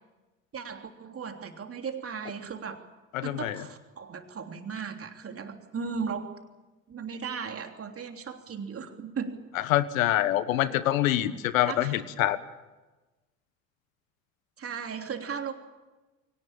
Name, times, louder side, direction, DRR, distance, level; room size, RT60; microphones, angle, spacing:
voice 1, 0.5-2.8 3.2-6.4 6.9-9.4 11.6-12.0 14.6-15.5, right 6 dB, 35° right, 5 dB, 3.2 m, -36 dB
voice 2, 3.1-3.6 9.7-12.4, left 13 dB, 80° left, 14 dB, 1.4 m, -25 dB
23.5 x 18.0 x 9.0 m, 1.2 s
hypercardioid pair, 70°, 40 cm